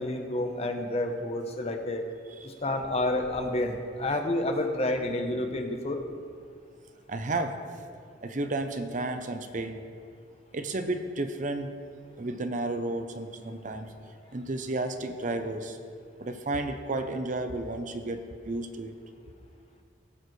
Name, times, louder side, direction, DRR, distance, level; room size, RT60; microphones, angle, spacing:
voice 1, 0.0-2.0 2.4-6.0, left 1 dB, 35° left, 4 dB, 0.8 m, -29 dB
voice 2, 7.1-7.6 8.2-9.8 10.5-11.7 12.2-13.9 14.3-15.8 16.2-19.0, right 2 dB, 40° right, 7 dB, 0.6 m, -32 dB
16.5 x 6.7 x 3.2 m, 2.2 s
head